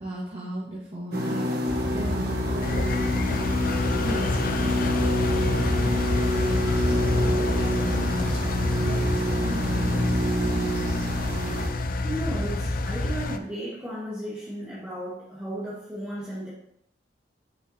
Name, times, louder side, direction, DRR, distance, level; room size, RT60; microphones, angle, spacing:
voice 1, 0.0-10.9, right 1 dB, 35° right, -6 dB, 1.3 m, -38 dB
sound 1, 1.1-11.7, equal, 60° right, 1.2 m, -27 dB
sound 2, 1.7-13.2, left 1 dB, 35° left, 0.9 m, -30 dB
Engine, 2.6-13.4, left 4 dB, 50° left, 0.4 m, -30 dB
voice 2, 12.0-16.5, right 1 dB, 10° right, -8 dB, 1.3 m, -34 dB
6.6 x 6.0 x 2.8 m, 0.75 s
head